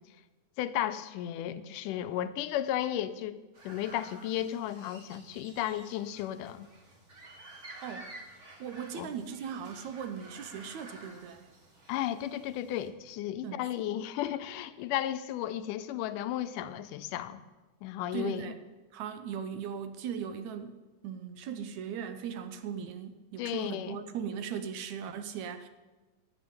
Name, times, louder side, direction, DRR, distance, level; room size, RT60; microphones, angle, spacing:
voice 1, 0.6-6.7 8.9-9.1 11.9-17.4 17.8-18.5 23.4-24.0, left 12 dB, 85° left, 2.2 m, -34 dB
sound 1, 3.5-12.9, right 2 dB, 35° right, 1.3 m, -51 dB
voice 2, 7.8-8.1 8.6-11.5 13.4-13.7 18.1-18.6 18.9-20.8 21.0-25.7, right 7 dB, 75° right, 2.0 m, -38 dB
12.0 x 7.5 x 9.4 m
omnidirectional pair, 3.6 m